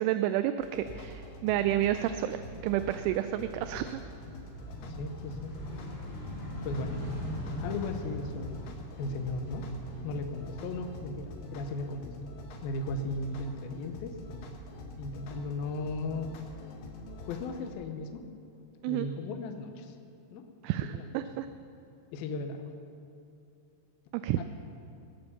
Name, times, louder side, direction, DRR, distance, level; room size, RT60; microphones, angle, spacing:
voice 1, 0.0-4.0 18.8-19.1 20.6-21.5 24.1-24.4, right 12 dB, 85° right, 10 dB, 2.8 m, -30 dB
sound 1, 0.6-17.7, left 1 dB, 75° left, 3.8 m, -45 dB
sound 2, 3.3-11.4 11.7-12.9, left 1 dB, 25° left, 3.3 m, -42 dB
voice 2, 4.8-5.5 6.6-7.0 7.6-8.6 9.0-9.7 10.0-12.3 12.6-14.6 15.0-16.3 17.3-18.2 18.9-19.9 20.3-20.4 20.8-21.1 22.1-22.6 24.4-24.5, left 2 dB, 90° left, 6 dB, 2.1 m, -36 dB
21.0 x 8.8 x 7.1 m, 2.6 s
omnidirectional pair, 5.8 m